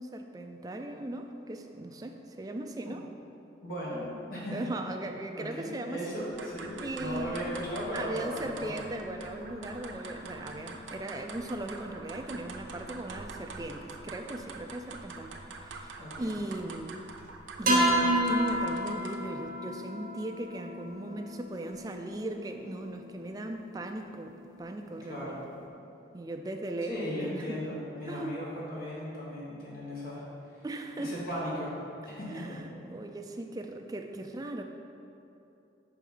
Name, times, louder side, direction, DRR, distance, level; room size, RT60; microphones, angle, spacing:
voice 1, 0.0-3.0 4.5-6.2 6.8-7.6 7.9-17.0 17.6-25.4 26.1-27.6 28.1-28.4 30.6-31.2 32.3-34.6, right 1 dB, 20° right, 5 dB, 0.3 m, -38 dB
voice 2, 3.6-4.6 5.3-8.7 16.0-16.4 25.1-25.4 26.8-30.2 31.0-31.8 32.0-32.6, equal, 50° left, -7 dB, 1.4 m, -37 dB
sound 1, 6.2-19.4, right 3 dB, 85° right, 0.6 m, -45 dB
sound 2, 7.9-14.8 15.3-15.5 17.6-25.7, equal, 45° right, 0.8 m, -34 dB
5.7 x 4.7 x 5.5 m, 2.8 s
head